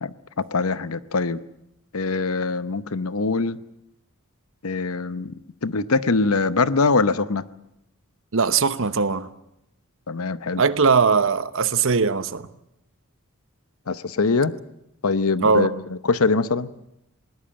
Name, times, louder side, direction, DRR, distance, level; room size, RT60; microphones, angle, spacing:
voice 1, 0.0-1.4 1.9-3.6 4.6-5.3 5.6-7.4 10.1-10.6 13.9-14.5 15.0-15.7 16.1-16.7, left 4 dB, 70° left, 15 dB, 0.8 m, -23 dB
voice 2, 8.3-9.3 10.6-12.5 15.4-15.7, right 5 dB, 60° right, 13 dB, 1.0 m, -20 dB
20.5 x 19.0 x 8.8 m, 0.83 s
head